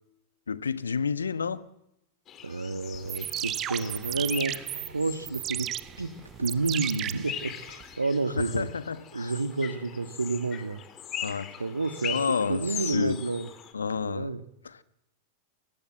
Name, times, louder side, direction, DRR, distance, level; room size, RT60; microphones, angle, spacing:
voice 1, 0.5-1.6 8.4-9.3 11.2-11.5 12.1-13.2 13.7-14.3 14.6-14.7, left 6 dB, 75° left, 1.4 m, -30 dB
sound 1, 2.3-13.7, left 9 dB, 30° left, 4.0 m, -41 dB
voice 2, 2.4-5.7 6.0-6.1 6.4-8.7 9.1-10.8 11.6-12.2 12.5-13.5 14.0-14.4, right 3 dB, 80° right, 1.7 m, -30 dB
sound 2, 2.9-7.9, right 12 dB, 30° right, 1.0 m, -35 dB
28.5 x 24.5 x 7.9 m
figure-of-eight pair, 90°, 0 cm